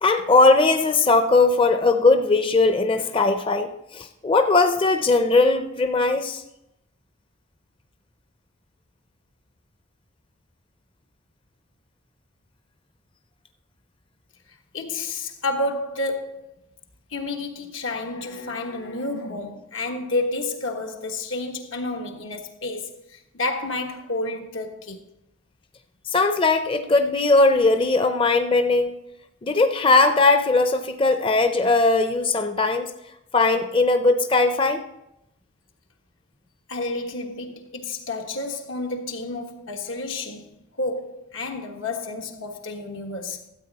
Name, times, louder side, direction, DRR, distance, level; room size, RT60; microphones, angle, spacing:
voice 1, 0.0-6.4 26.1-29.0 29.4-32.9 33.3-34.8, left 3 dB, 25° left, 0.6 m, -19 dB
voice 2, 14.7-16.5 17.1-25.0 36.7-40.5 40.8-43.4, left 2 dB, 85° left, 1.4 m, -30 dB
13.5 x 8.2 x 4.1 m
head